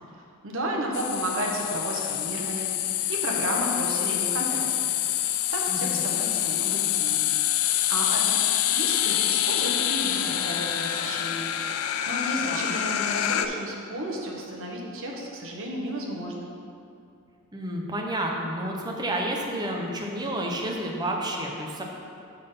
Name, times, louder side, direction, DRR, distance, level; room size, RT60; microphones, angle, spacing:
voice 1, 0.4-2.7 3.1-4.9 5.2-7.3 7.9-8.4 8.7-16.5, right 1 dB, 65° right, -1 dB, 1.1 m, -32 dB
sound 1, 0.9-13.5, left 11 dB, 70° left, 0.4 m, -26 dB
voice 2, 5.7-6.0 12.4-12.8 17.5-21.8, right 1 dB, 20° right, 0 dB, 0.9 m, -30 dB
6.0 x 5.8 x 5.6 m, 2.6 s
head